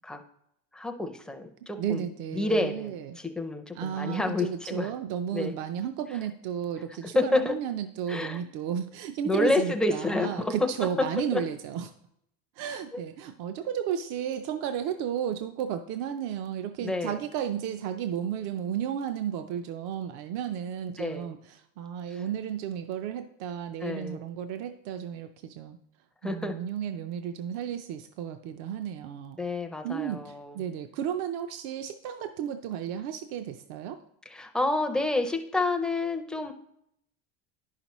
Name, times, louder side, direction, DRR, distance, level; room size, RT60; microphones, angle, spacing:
voice 1, 0.7-4.9 5.3-5.5 7.1-7.5 8.1-8.4 9.2-10.7 11.3-11.4 16.8-17.2 21.0-21.3 22.1-22.2 23.8-24.2 26.2-26.6 29.4-30.6 34.3-36.5, left 2 dB, ahead, 3 dB, 0.4 m, -29 dB
voice 2, 1.8-3.2 3.7-11.9 12.6-25.8 26.2-29.4 29.8-34.0, right 9 dB, 60° right, 8 dB, 0.5 m, -33 dB
10.5 x 5.7 x 3.0 m, 0.75 s
cardioid pair, 150°, 33 cm